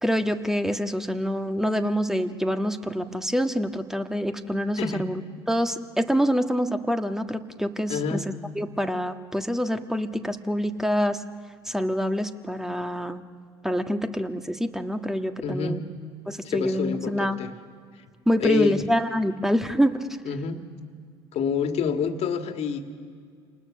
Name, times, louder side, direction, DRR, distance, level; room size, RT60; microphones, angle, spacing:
voice 1, 0.0-5.2 5.5-8.2 8.5-11.2 11.6-13.2 13.6-15.8 16.3-17.4 18.2-20.1, equal, 5° right, 7 dB, 1.6 m, -26 dB
voice 2, 4.8-5.1 7.9-8.2 15.4-15.8 16.4-17.5 18.4-18.8 20.3-20.6 21.3-22.8, left 6 dB, 50° left, 6 dB, 2.1 m, -27 dB
28.5 x 19.5 x 6.5 m, 2.1 s
hypercardioid pair, 65°, 14 cm